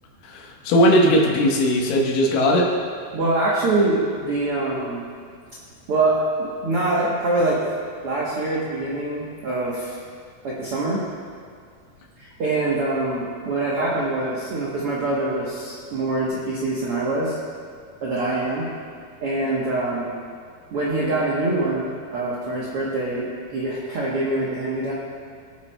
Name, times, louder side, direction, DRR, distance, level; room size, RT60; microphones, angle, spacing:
voice 1, 0.2-2.7, equal, 75° left, -1 dB, 2.8 m, -18 dB
voice 2, 3.1-5.0 5.9-7.6 8.0-10.0 10.4-11.0 12.2-17.4 18.0-18.7 19.2-20.1 20.7-24.9, right 2 dB, 80° right, -6 dB, 1.3 m, -24 dB
19.0 x 8.1 x 2.3 m, 2.1 s
omnidirectional pair, 4.3 m